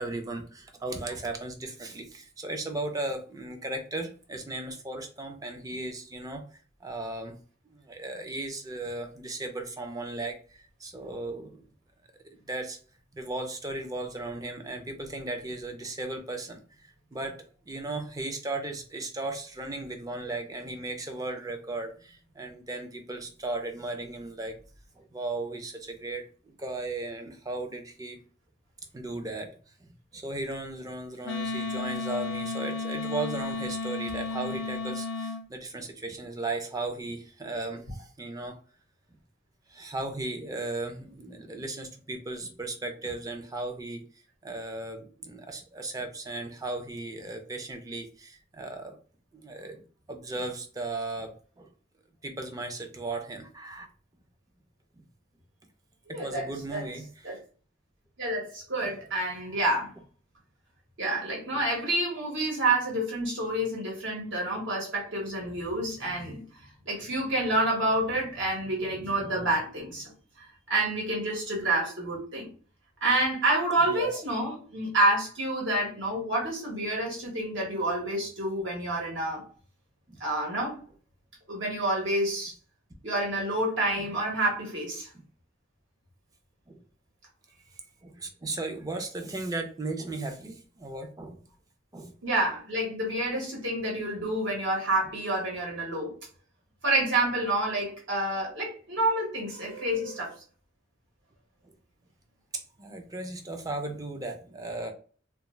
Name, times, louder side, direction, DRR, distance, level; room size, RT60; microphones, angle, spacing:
voice 1, 0.0-6.4 6.8-7.3 7.7-11.6 12.4-12.8 13.1-24.5 25.0-28.2 28.9-29.5 30.1-37.9 38.2-38.6 39.7-44.0 44.4-49.0 49.3-49.8 50.1-51.3 51.6-51.7 52.2-53.9 56.1-57.3 61.5-61.6 73.8-74.1 80.1-80.2 84.0-84.1 86.7-86.8 88.0-91.4 91.9-92.1 102.8-104.9, right 2 dB, 20° right, 5 dB, 0.4 m, -36 dB
Wind instrument woodwind instrument, 31.2-35.4, left 3 dB, 70° left, 0.5 m, -33 dB
voice 2, 56.1-56.9 57.2-57.4 58.2-59.9 61.0-66.4 66.8-70.1 70.4-72.5 73.0-79.4 80.2-80.8 81.5-82.5 83.0-85.1 92.2-96.1 96.8-100.3, right 1 dB, 70° right, -2 dB, 1.2 m, -28 dB
2.3 x 2.3 x 3.1 m, 0.40 s
head